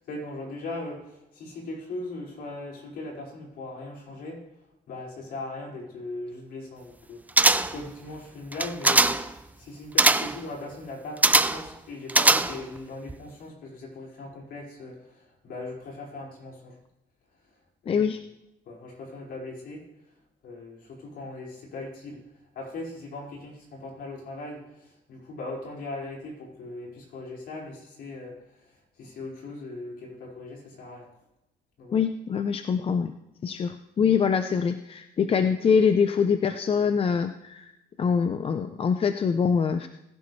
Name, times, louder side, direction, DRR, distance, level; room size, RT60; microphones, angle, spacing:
voice 1, 0.0-4.4 4.9-7.2 7.7-16.8 17.8-18.1 18.6-19.9 20.4-22.2 22.5-28.4 29.0-31.1 31.8-32.0, left 2 dB, 65° left, -2 dB, 5.1 m, -39 dB
sound 1, 7.4-7.9 8.5-9.3 10.0-10.4 11.2-11.7 12.1-12.8 13.1-13.2, right 2 dB, 10° right, 0.5 m, -21 dB
voice 2, 17.9-18.2 31.9-33.1 33.4-37.7 38.0-39.9, left 6 dB, 35° left, 9 dB, 0.6 m, -24 dB
20.0 x 11.5 x 3.3 m, 0.88 s
cardioid pair, 110°, 17 cm